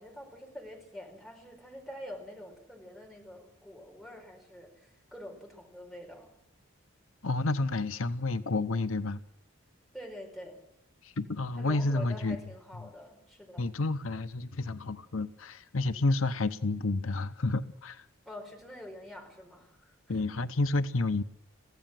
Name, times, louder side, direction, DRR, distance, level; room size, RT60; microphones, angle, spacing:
voice 1, 0.0-6.3 9.9-10.6 11.6-13.7 18.2-20.3, left 1 dB, ahead, 4.6 m, -46 dB
voice 2, 7.2-9.2 11.0-12.4 13.6-18.0 20.1-21.2, left 2 dB, 80° left, 0.9 m, -30 dB
23.5 x 15.5 x 7.7 m
head